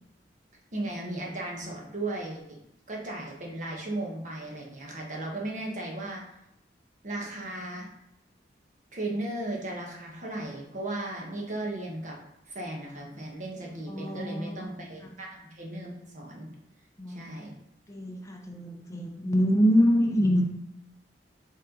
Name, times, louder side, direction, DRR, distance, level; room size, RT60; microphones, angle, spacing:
voice 1, 0.7-2.6 2.9-6.2 7.0-7.9 8.9-12.2 12.5-16.5 17.1-17.6, right 2 dB, 45° right, -1 dB, 1.4 m, -36 dB
voice 2, 13.9-14.6 17.0-17.3 17.9-20.5, equal, 15° left, 1 dB, 0.6 m, -25 dB
7.1 x 3.6 x 3.9 m, 0.82 s
head